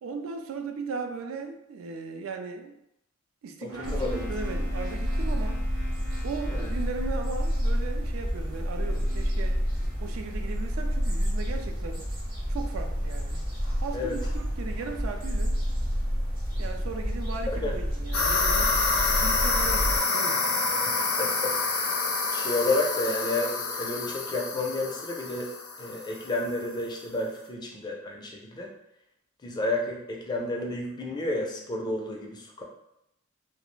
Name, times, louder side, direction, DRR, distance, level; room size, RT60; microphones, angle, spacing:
voice 1, 0.0-2.7 3.4-5.6 6.2-9.6 10.0-12.0 12.5-13.4 13.8-15.6 16.6-18.8 19.2-20.8, right 4 dB, 70° right, 5 dB, 0.3 m, -37 dB
voice 2, 3.6-4.3 6.5-6.7 13.9-14.2 17.5-17.7 20.7-21.9 22.3-25.5 25.8-28.7 29.4-32.6, left 2 dB, 20° left, 0 dB, 0.4 m, -31 dB
sound 1, 3.7-11.5, left 3 dB, 85° right, 0.9 m, -45 dB
sound 2, 3.8-20.0, equal, 45° right, 0.9 m, -29 dB
sound 3, 18.1-26.3, left 3 dB, 80° left, 0.5 m, -27 dB
2.3 x 2.0 x 3.1 m, 0.80 s
head